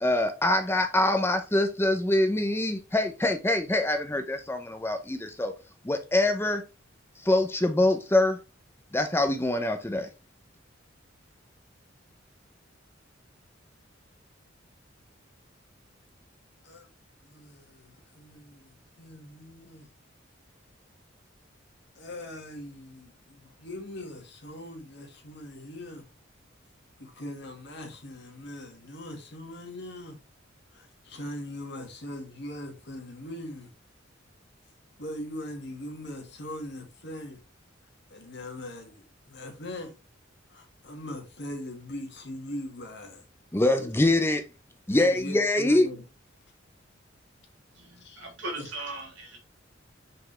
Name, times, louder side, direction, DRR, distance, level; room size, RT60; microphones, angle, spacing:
voice 1, 0.0-5.5 5.8-6.6 7.2-8.4 8.9-10.1 43.5-44.4 44.9-45.9, left 1 dB, 10° left, 0.6 m, -24 dB
voice 2, 17.2-19.9 22.0-26.1 27.0-30.2 30.7-33.7 35.0-37.4 38.1-40.0 40.5-43.2 43.8-43.9 44.9-46.0 48.0-48.3 48.5-48.7, left 1 dB, 60° left, 2.0 m, -41 dB
voice 3, 47.7-49.4, right 2 dB, 75° right, 3.1 m, -38 dB
5.8 x 5.2 x 3.2 m
head